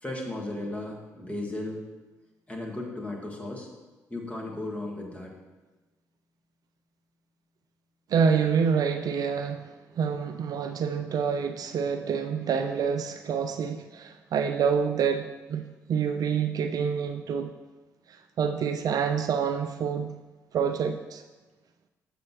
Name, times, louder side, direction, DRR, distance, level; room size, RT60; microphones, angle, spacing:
voice 1, 0.0-1.8 2.5-3.7 4.1-5.3 9.9-10.0, left 1 dB, 15° left, -1 dB, 1.7 m, -35 dB
voice 2, 8.1-15.6 15.9-17.5 18.4-20.1 20.5-21.2, right 6 dB, 55° right, 8 dB, 0.3 m, -27 dB
7.3 x 5.6 x 3.0 m, 1.2 s
hypercardioid pair, 45°, 8 cm